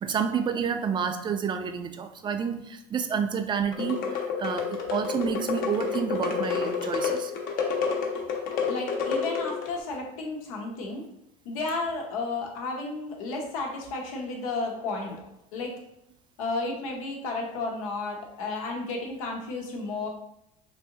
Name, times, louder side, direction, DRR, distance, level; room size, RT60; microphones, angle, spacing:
voice 1, 0.0-7.3, right 6 dB, 25° right, 7 dB, 0.4 m, -29 dB
sound 1, 3.7-9.8, left 6 dB, 60° left, 0.8 m, -29 dB
voice 2, 8.3-11.0 11.4-15.7 16.4-20.1, left 3 dB, 90° left, 1 dB, 0.8 m, -33 dB
3.4 x 2.6 x 2.8 m, 0.80 s
supercardioid pair, 100°, 17 cm